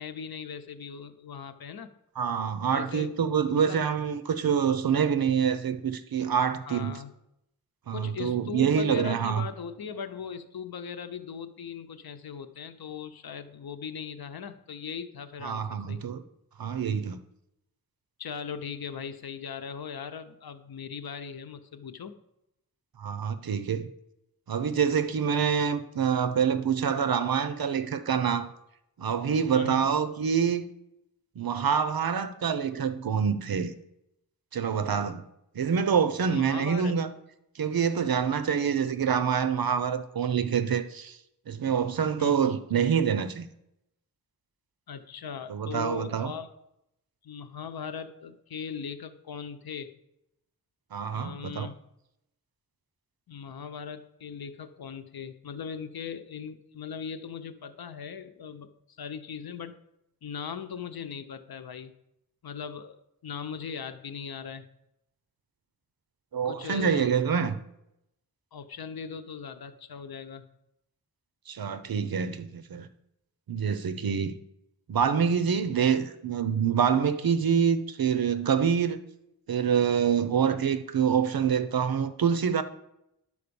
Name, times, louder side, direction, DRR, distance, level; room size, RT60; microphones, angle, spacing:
voice 1, 0.0-1.9 2.7-3.1 3.5-3.8 6.7-7.1 7.9-16.0 18.2-22.2 29.5-29.9 36.3-37.0 42.2-42.5 44.9-46.5 47.2-49.9 51.1-51.8 53.3-58.7 59.0-59.8 60.2-61.9 62.4-64.6 66.4-67.1 68.5-70.4, left 6 dB, 85° left, 0.8 m, -39 dB
voice 2, 2.2-7.0 7.9-9.5 15.4-16.2 16.6-17.2 23.0-23.9 24.5-28.5 29.0-30.6 31.4-33.7 34.5-35.2 35.5-37.1 37.6-41.2 41.5-43.5 45.5-46.3 50.9-51.7 66.3-67.6 71.5-72.9 73.5-74.3 74.9-79.0 79.5-82.6, right 7 dB, 75° right, 0.8 m, -26 dB
11.0 x 4.8 x 6.9 m
wide cardioid pair, 110°, 36 cm